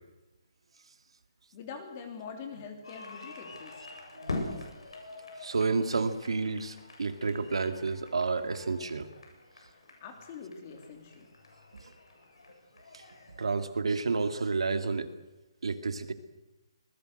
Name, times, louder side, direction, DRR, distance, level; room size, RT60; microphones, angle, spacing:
voice 1, 1.5-3.8 10.0-11.3, left 5 dB, 25° left, 4 dB, 3.1 m, -44 dB
sound 1, 2.8-13.6, left 2 dB, 85° left, 7.9 m, -44 dB
voice 2, 4.1-4.6 5.4-9.1 12.9-13.0 13.4-15.1 15.6-16.1, right 4 dB, 85° right, 8 dB, 2.4 m, -30 dB
25.5 x 20.5 x 6.7 m, 1.1 s
hypercardioid pair, 175°, 3 cm